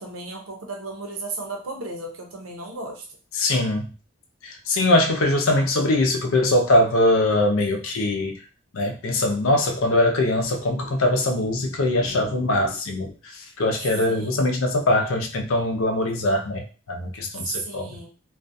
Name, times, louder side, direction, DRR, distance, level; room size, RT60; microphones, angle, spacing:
voice 1, 0.0-3.1 14.1-14.6 17.4-18.1, right 3 dB, 85° right, 2 dB, 0.7 m, -34 dB
voice 2, 3.3-3.9 4.4-8.4 8.7-18.0, left 1 dB, 75° left, 3 dB, 0.5 m, -22 dB
2.4 x 2.2 x 2.5 m, 0.36 s
head